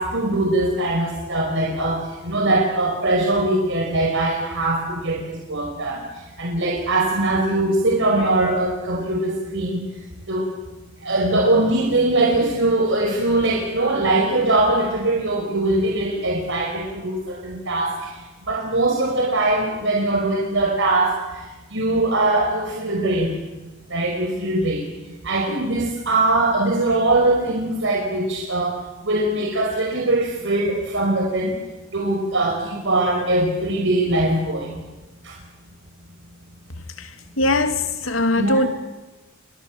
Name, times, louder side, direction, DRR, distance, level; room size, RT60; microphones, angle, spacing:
voice 1, 0.0-6.0 6.4-9.8 10.3-10.5 11.0-18.1 18.4-21.4 21.7-23.3 23.9-24.9 25.2-28.7 29.0-31.6 31.9-34.7 35.2-35.3 38.3-38.6, right 2 dB, 65° right, 5.3 m, -21 dB
voice 2, 37.4-38.7, left 2 dB, 80° left, 2.5 m, -20 dB
30.0 x 25.5 x 7.5 m
head